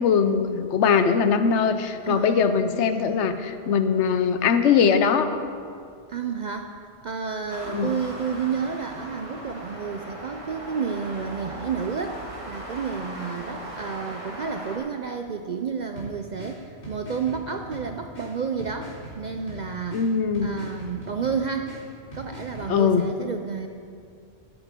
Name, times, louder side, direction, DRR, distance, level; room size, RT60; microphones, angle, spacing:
voice 1, 0.0-5.4 7.7-7.9 19.9-20.5 22.7-23.0, left 6 dB, 75° left, 9 dB, 1.0 m, -21 dB
voice 2, 2.0-3.2 6.1-20.0 20.4-21.8 22.1-23.7, right 6 dB, 55° right, 5 dB, 0.5 m, -31 dB
sound 1, 7.5-14.8, right 1 dB, 30° right, 1.5 m, -38 dB
sound 2, 16.0-22.9, equal, 50° left, 3.4 m, -42 dB
13.0 x 9.9 x 3.6 m, 2.3 s
omnidirectional pair, 1.2 m